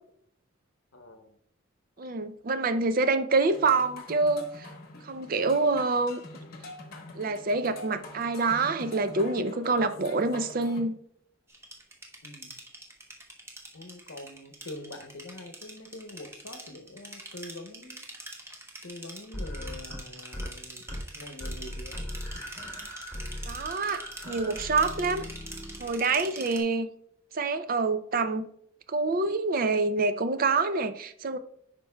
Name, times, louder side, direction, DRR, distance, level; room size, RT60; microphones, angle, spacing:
voice 1, 0.9-1.4 2.0-2.2 12.2-12.5 13.7-18.1 18.8-20.9 21.1-22.1 22.3-22.7 26.2-26.5, left 2 dB, 70° left, 7 dB, 0.8 m, -45 dB
voice 2, 2.0-4.7 5.0-6.2 7.1-10.9 23.5-25.3 25.8-26.9 27.3-28.5 28.9-31.4, right 3 dB, 45° right, 11 dB, 0.4 m, -26 dB
sound 1, 3.5-10.8, left 2 dB, 45° left, 1.1 m, -45 dB
sound 2, 11.5-26.6, right 2 dB, 10° right, 0.8 m, -44 dB
sound 3, 19.3-20.5 20.8-21.1 21.4-26.2, equal, 5° left, 2.4 m, -39 dB
11.0 x 4.5 x 2.2 m, 0.69 s
head